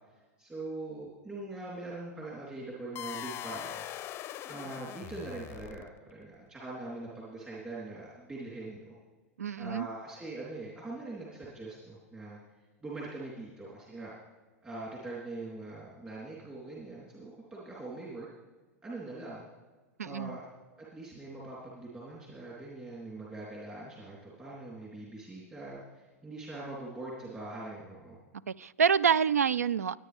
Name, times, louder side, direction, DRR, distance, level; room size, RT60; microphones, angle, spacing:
voice 1, 0.4-3.8 4.5-9.0 9.5-12.4 12.8-14.1 14.6-18.3 18.8-19.4 20.0-20.5 20.8-28.2, right 2 dB, 20° right, 3.7 m, -42 dB
sound 1, 3.0-6.1, left 12 dB, 30° left, 0.5 m, -41 dB
voice 2, 9.4-9.9 20.0-20.4 28.5-30.0, right 7 dB, 85° right, 0.4 m, -27 dB
23.0 x 9.2 x 3.6 m
hypercardioid pair, 100°, 8 cm